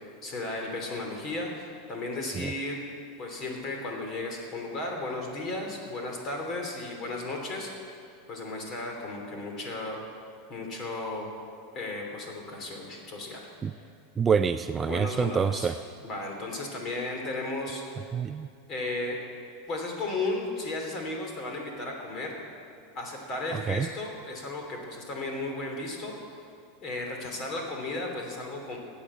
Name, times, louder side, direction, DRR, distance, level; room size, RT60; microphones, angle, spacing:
voice 1, 0.2-2.8 3.2-7.9 8.3-10.0 10.5-11.3 11.7-13.4 14.9-15.7 16.0-18.1 18.7-19.2 19.7-22.4 22.9-26.1 26.8-28.8, left 2 dB, 35° left, 1 dB, 3.1 m, -34 dB
voice 2, 14.2-15.7 18.1-18.5 23.5-23.9, right 6 dB, 20° right, 10 dB, 0.3 m, -26 dB
15.5 x 9.3 x 7.4 m, 2.4 s
supercardioid pair, 145°, 0 cm